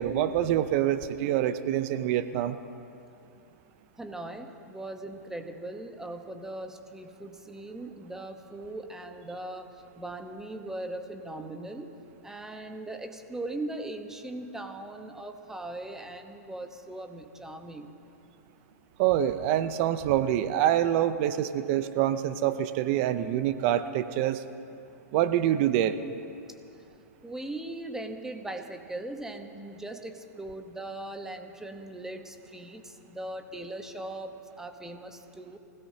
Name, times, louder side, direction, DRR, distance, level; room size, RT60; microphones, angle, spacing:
voice 1, 0.0-2.6 19.0-24.4 25.1-26.0, right 11 dB, 45° right, 11 dB, 0.7 m, -26 dB
voice 2, 4.0-11.9 12.2-17.9 27.2-35.6, right 2 dB, 5° right, 5 dB, 1.1 m, -39 dB
25.0 x 16.5 x 2.9 m, 2.7 s
hypercardioid pair, 115°, 9 cm